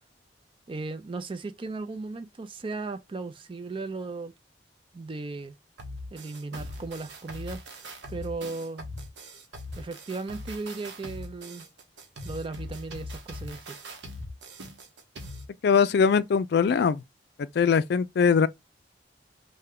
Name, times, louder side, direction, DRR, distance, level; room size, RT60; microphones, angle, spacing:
voice 1, 0.7-4.3 4.9-5.5 6.1-7.6 8.1-8.9 9.8-11.7 12.2-13.8, right 3 dB, 30° right, 0.4 m, -36 dB
sound 1, 5.8-15.5, left 1 dB, 75° right, 0.8 m, -41 dB
voice 2, 15.6-17.0 17.4-18.5, left 6 dB, 60° left, 0.3 m, -21 dB
3.3 x 2.2 x 3.5 m
head